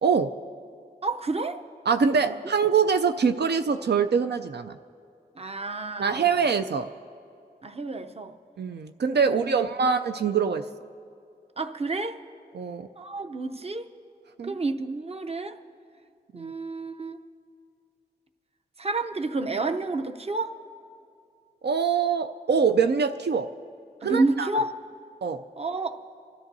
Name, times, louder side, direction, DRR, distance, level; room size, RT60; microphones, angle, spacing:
voice 1, 0.0-0.3 1.9-4.8 6.0-6.9 8.6-10.6 12.5-12.9 14.4-14.5 16.3-16.5 21.6-23.5 24.0-24.5 25.2-25.4, right 6 dB, 80° right, 8 dB, 0.4 m, -24 dB
voice 2, 1.0-1.6 2.1-2.4 5.4-6.3 7.6-8.3 9.2-9.7 11.6-12.2 13.0-13.9 14.4-15.6 16.3-17.2 18.8-20.6 24.0-24.7 25.6-26.0, right 3 dB, 35° right, 7 dB, 0.6 m, -30 dB
28.5 x 13.0 x 2.7 m, 2.5 s
wide cardioid pair, 75°, 17 cm